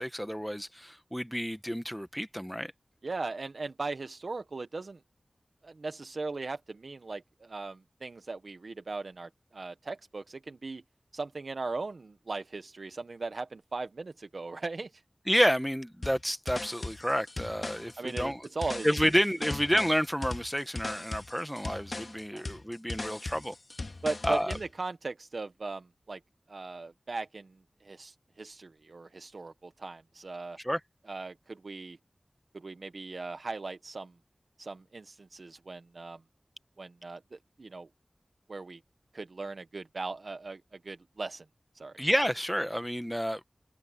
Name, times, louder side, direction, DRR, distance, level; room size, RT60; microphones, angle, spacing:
voice 1, 0.0-2.7 15.3-18.4 18.8-23.5 24.2-24.5 30.6-30.8 42.0-43.4, equal, ahead, 1.1 m, -29 dB
voice 2, 3.0-5.0 5.6-10.8 11.1-15.0 18.0-18.9 22.3-22.5 24.0-26.2 26.5-30.6 31.1-32.0 32.5-34.1 34.6-36.2 36.8-37.9 38.5-38.8 39.1-41.4 41.7-42.0, right 3 dB, 75° right, 0.9 m, -38 dB
sound 1, 16.0-24.7, left 2 dB, 55° left, 1.9 m, -39 dB
wide cardioid pair, 65°, 0 cm